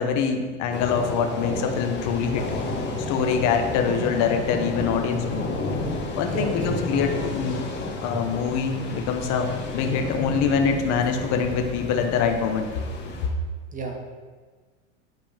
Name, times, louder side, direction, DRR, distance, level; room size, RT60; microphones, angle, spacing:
voice 1, 0.0-2.5 3.1-5.5 6.1-7.7 8.0-12.8, left 6 dB, 50° left, 5 dB, 1.0 m, -24 dB
sound 1, 0.7-13.3, left 2 dB, 30° left, 1.6 m, -31 dB
voice 2, 6.3-6.9 13.7-14.0, right 3 dB, 20° right, 2 dB, 1.5 m, -33 dB
9.2 x 4.9 x 3.5 m, 1.4 s
hypercardioid pair, 95°, 35 cm